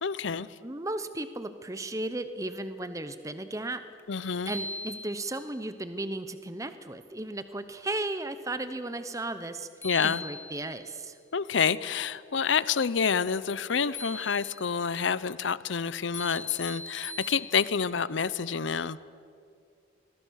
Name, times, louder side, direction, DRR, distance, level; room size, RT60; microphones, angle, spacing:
voice 1, 0.0-0.5 4.1-4.5 9.8-10.2 11.3-19.0, left 6 dB, 80° left, 17 dB, 0.7 m, -28 dB
voice 2, 0.6-3.8 4.2-9.7 10.0-11.2, right 2 dB, 15° right, 11 dB, 0.8 m, -35 dB
sound 1, 4.0-4.1 4.5-5.5 9.4-9.5 9.8-10.9 13.9-14.8 16.1-17.9, left 2 dB, 15° left, 1.4 m, -40 dB
27.0 x 21.5 x 6.5 m, 2.4 s
head